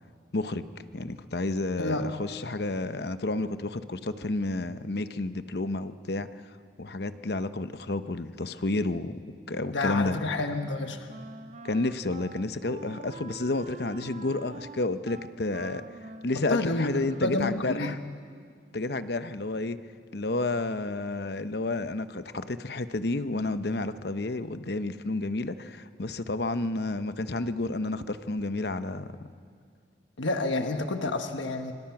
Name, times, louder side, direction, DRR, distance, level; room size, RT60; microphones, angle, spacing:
voice 1, 0.3-0.7 0.9-6.3 6.8-9.2 9.5-10.2 11.6-15.8 16.2-18.0 18.7-19.8 20.1-29.2, left 2 dB, 60° left, 11 dB, 0.8 m, -30 dB
voice 2, 9.7-11.1 16.5-16.9 17.2-17.9 30.2-31.7, left 2 dB, 90° left, 6 dB, 1.4 m, -29 dB
Wind instrument woodwind instrument, 10.1-17.6, right 3 dB, 40° right, 0.7 m, -46 dB
26.0 x 25.0 x 6.0 m, 2.1 s
head